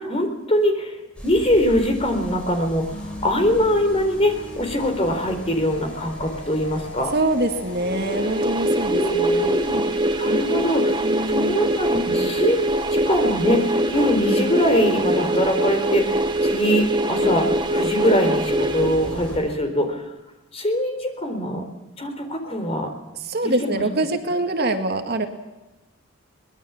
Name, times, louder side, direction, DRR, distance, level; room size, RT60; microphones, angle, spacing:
voice 1, 0.0-7.1 8.8-9.8 10.2-11.0 11.3-20.1 20.5-21.6 22.0-22.9 23.6-23.8, left 1 dB, 30° left, 5 dB, 4.1 m, -23 dB
sound 1, 1.1-19.4, equal, 5° left, 5.6 m, -42 dB
sound 2, 2.9-8.5, left 1 dB, 65° left, 3.3 m, -39 dB
voice 2, 7.1-9.6 11.0-11.6 23.2-25.3, right 2 dB, 45° right, 5 dB, 2.0 m, -24 dB
sound 3, 7.8-19.6, right 1 dB, 20° right, 1.3 m, -23 dB
24.0 x 20.5 x 7.3 m, 1.1 s
head